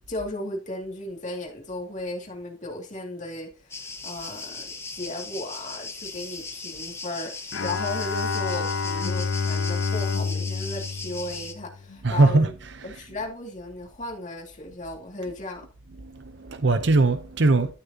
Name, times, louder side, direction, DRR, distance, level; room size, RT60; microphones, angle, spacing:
voice 1, 0.1-12.5 12.8-15.7, left 1 dB, 35° left, 2.3 m, -35 dB
sound 1, 3.7-11.5, left 3 dB, 15° left, 1.1 m, -38 dB
Bowed string instrument, 7.5-12.0, left 4 dB, 70° left, 0.6 m, -28 dB
voice 2, 12.0-13.0 15.9-17.7, right 2 dB, 60° right, 0.7 m, -21 dB
12.5 x 6.6 x 2.8 m
head